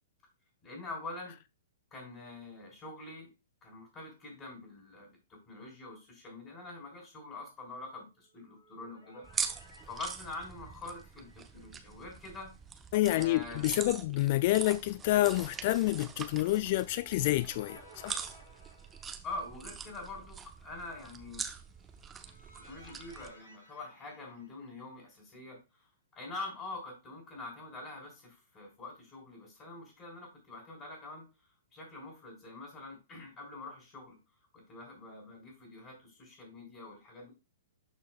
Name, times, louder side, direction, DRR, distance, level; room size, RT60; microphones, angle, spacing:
voice 1, 0.6-1.4 1.9-3.3 3.6-9.2 9.8-12.5 13.1-13.9 19.2-21.5 22.2-22.4 22.7-25.9 26.1-31.3 31.7-34.2 34.5-37.3, left 2 dB, 25° left, 3.6 m, -45 dB
sound 1, 8.3-12.6 12.9-13.0 16.5-19.7 21.7-25.1, equal, 60° left, 3.1 m, -58 dB
sound 2, 9.2-23.3, right 6 dB, 15° right, 0.7 m, -43 dB
voice 2, 12.9-18.2, left 16 dB, 40° left, 0.3 m, -28 dB
12.0 x 4.6 x 2.2 m
figure-of-eight pair, 110°, 0 cm